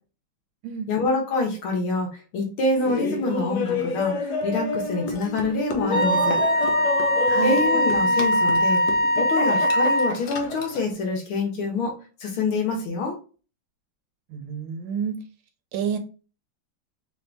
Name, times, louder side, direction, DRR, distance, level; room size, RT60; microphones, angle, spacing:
voice 1, 0.9-6.4 7.4-8.8 9.2-11.9 12.2-13.2, left 3 dB, 85° left, 2.0 m, -26 dB
Laughter, 2.8-10.9, left 3 dB, 65° left, 1.2 m, -29 dB
Wind instrument woodwind instrument, 5.9-10.2, equal, 25° left, 1.2 m, -21 dB
voice 2, 7.3-7.6 14.3-15.2 15.7-16.0, right 8 dB, 75° right, 1.4 m, -29 dB
4.1 x 2.6 x 3.4 m
omnidirectional pair, 2.3 m